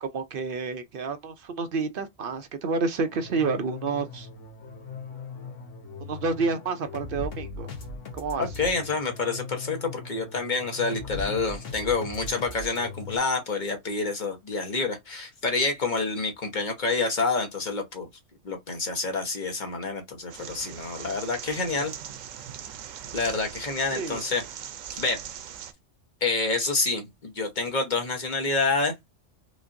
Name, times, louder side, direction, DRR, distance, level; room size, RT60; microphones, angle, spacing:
voice 1, 0.0-4.3 6.0-7.7 8.1-8.4 24.0-24.2, right 4 dB, 60° right, 0.6 m, -29 dB
sound 1, 3.0-13.2, left 4 dB, 75° left, 1.4 m, -39 dB
voice 2, 8.4-18.1 18.4-21.9 23.1-24.4 24.9-25.2 26.2-28.9, left 3 dB, 40° left, 1.1 m, -28 dB
sound 2, 20.3-25.7, right 9 dB, 85° right, 1.0 m, -40 dB
5.0 x 2.6 x 2.6 m
omnidirectional pair, 1.3 m